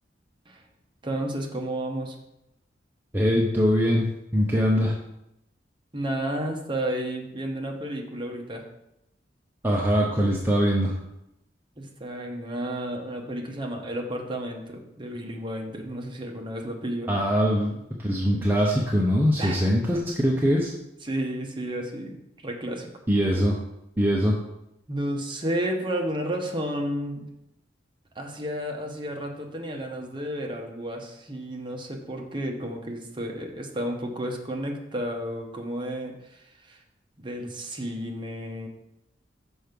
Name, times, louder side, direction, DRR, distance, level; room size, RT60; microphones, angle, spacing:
voice 1, 1.0-2.2 5.9-8.6 11.8-17.1 19.4-19.6 19.9-20.0 21.0-22.9 24.9-27.3 28.1-36.8 37.2-38.7, right 1 dB, 25° right, 2 dB, 0.9 m, -32 dB
voice 2, 3.1-4.0 4.3-5.0 9.6-11.0 17.1-20.7 23.1-23.6 24.0-24.4, equal, 10° right, -3 dB, 0.6 m, -22 dB
6.2 x 4.6 x 5.2 m, 0.85 s
head